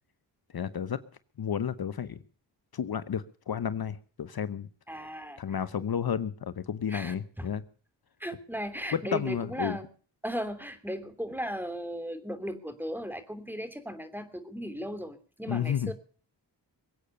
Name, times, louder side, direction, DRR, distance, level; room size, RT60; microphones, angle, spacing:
voice 1, 0.5-1.0 1.4-2.2 2.7-4.7 5.4-7.6 8.9-9.8 15.5-15.9, left 8 dB, 55° left, 14 dB, 1.0 m, -31 dB
voice 2, 4.9-5.6 6.9-7.5 8.2-9.9 10.2-15.9, equal, 5° right, 10 dB, 2.9 m, -36 dB
22.5 x 8.5 x 6.8 m, 0.42 s
cardioid pair, 55°, 44 cm